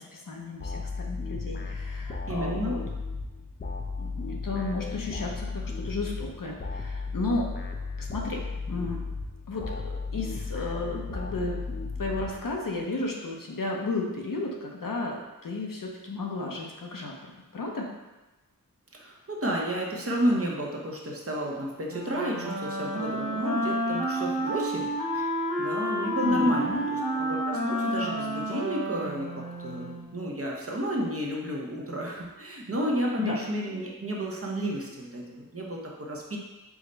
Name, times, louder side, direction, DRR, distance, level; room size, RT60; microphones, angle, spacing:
voice 1, 0.0-2.8 4.0-7.5 8.0-8.4 8.7-9.0 9.5-11.6 12.0-17.9 26.2-26.9 33.2-33.4, left 2 dB, 70° left, 0 dB, 0.7 m, -33 dB
sound 1, 0.6-12.8, left 4 dB, 30° left, 0.5 m, -35 dB
voice 2, 2.3-2.8 18.9-25.3 25.6-36.4, equal, 40° right, -2 dB, 0.8 m, -31 dB
Wind instrument woodwind instrument, 21.9-30.1, equal, 20° right, 1.2 m, -30 dB
4.8 x 2.1 x 3.9 m, 1.1 s
wide cardioid pair, 50°, 35 cm